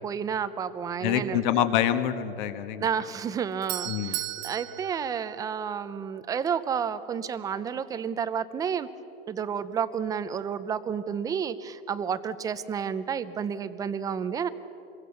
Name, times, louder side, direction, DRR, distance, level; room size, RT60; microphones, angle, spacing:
voice 1, 0.0-1.6 2.8-8.9 9.3-14.5, right 7 dB, 10° right, 13 dB, 0.5 m, -31 dB
voice 2, 1.0-2.9 3.9-4.2, left 10 dB, 50° left, 10 dB, 1.6 m, -26 dB
Doorbell, 3.3-6.1, right 15 dB, 70° right, 1.0 m, -37 dB
27.0 x 22.5 x 6.9 m, 2.9 s
supercardioid pair, 160°, 31 cm